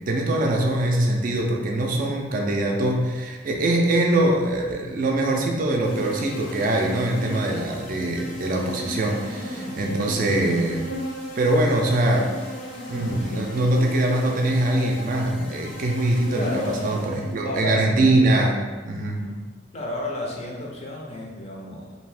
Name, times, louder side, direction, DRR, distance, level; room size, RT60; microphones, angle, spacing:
voice 1, 0.1-10.9 11.4-12.3 12.9-18.6 18.8-19.2, right 1 dB, 45° right, 0 dB, 0.4 m, -23 dB
sound 1, 5.8-17.6, equal, 60° left, 0.8 m, -35 dB
voice 2, 16.3-17.0 17.4-17.9 18.9-22.0, left 1 dB, 35° left, -2 dB, 0.5 m, -32 dB
2.7 x 2.5 x 3.3 m, 1.3 s
head